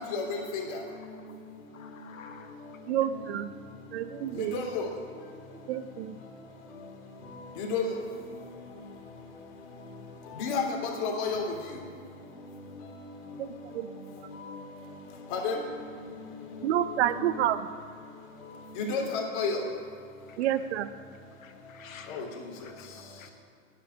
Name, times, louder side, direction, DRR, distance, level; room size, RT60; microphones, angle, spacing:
voice 1, 0.1-0.8 4.4-4.9 7.6-8.0 10.4-11.5 15.3-15.6 17.2-17.3 18.8-19.6 22.1-22.3, left 4 dB, 45° left, 1 dB, 3.2 m, -30 dB
voice 2, 1.7-2.5 20.3-20.4 21.4-22.2 22.6-22.9 23.2-23.3, left 7 dB, 85° left, 6 dB, 1.3 m, -50 dB
voice 3, 2.9-3.5 3.9-4.6 5.7-6.2 13.4-14.2 16.6-17.7 20.4-20.9, right 11 dB, 55° right, 13 dB, 0.7 m, -29 dB
10.0 x 9.0 x 9.9 m, 2.3 s
hypercardioid pair, 125°, 39 cm